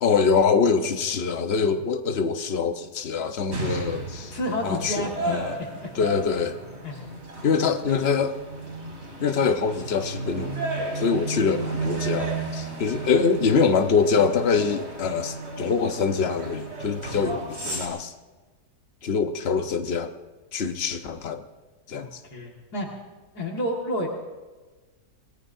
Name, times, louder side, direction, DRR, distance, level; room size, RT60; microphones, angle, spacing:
voice 1, 0.0-4.3 4.6-5.6 5.9-6.6 7.4-8.4 9.2-18.1 19.0-20.1 20.5-21.4 21.9-22.2, left 5 dB, 45° left, 7 dB, 1.1 m, -24 dB
sound 1, 3.5-17.9, right 3 dB, 40° right, 2.8 m, -33 dB
voice 2, 4.3-6.0 6.8-7.0 12.9-13.1 21.9-23.0 23.3-24.1, left 1 dB, 70° left, -1 dB, 2.5 m, -31 dB
28.0 x 19.0 x 2.7 m, 1.3 s
omnidirectional pair, 1.7 m